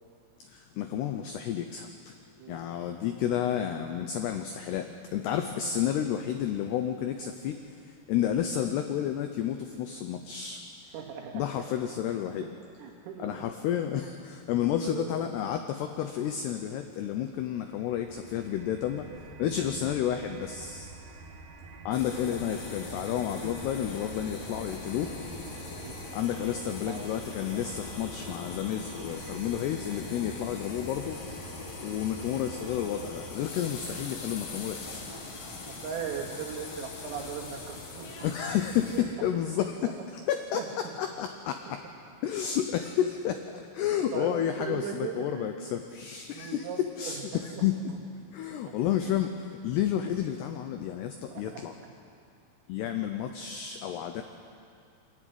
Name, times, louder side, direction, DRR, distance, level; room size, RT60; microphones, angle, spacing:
voice 1, 0.5-2.1 2.5-7.6 8.1-10.6 11.3-12.5 13.2-19.1 19.4-20.9 21.9-25.1 26.1-31.2 31.8-35.0 38.2-39.9 40.3-41.8 42.2-47.9 48.3-51.7 52.7-54.2, left 10 dB, 85° left, 6 dB, 2.3 m, -31 dB
voice 2, 2.4-2.7 10.9-11.4 12.4-12.5 12.8-13.4 14.8-15.2 25.8-26.0 26.9-27.1 34.9-38.1 38.9-39.0 39.8-39.9 40.5-40.7 41.7-41.8 44.1-45.7 46.3-47.6 49.1-49.2 51.3-51.6, right 7 dB, 80° right, 2 dB, 4.6 m, -39 dB
sound 1, 17.5-33.7, right 5 dB, 65° right, 2.2 m, -47 dB
sound 2, 21.9-39.0, left 3 dB, 50° left, 3.6 m, -41 dB
24.5 x 14.0 x 9.4 m, 2.4 s
omnidirectional pair, 5.9 m